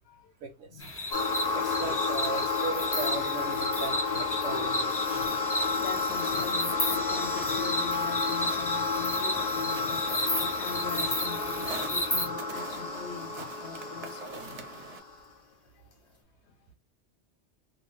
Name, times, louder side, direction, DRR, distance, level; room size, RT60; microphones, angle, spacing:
voice 1, 0.4-0.8 1.5-5.2, right 4 dB, 80° right, 0.9 m, -37 dB
sound 1, 0.8-12.3, left 1 dB, 20° left, 0.3 m, -33 dB
sound 2, 1.1-15.2, left 4 dB, 40° left, 0.7 m, -31 dB
voice 2, 1.3-1.9 5.1-14.7 15.7-15.8, left 6 dB, 75° left, 0.8 m, -43 dB
sound 3, 5.2-15.0, right 4 dB, 45° right, 0.5 m, -45 dB
2.5 x 2.2 x 3.2 m
omnidirectional pair, 1.2 m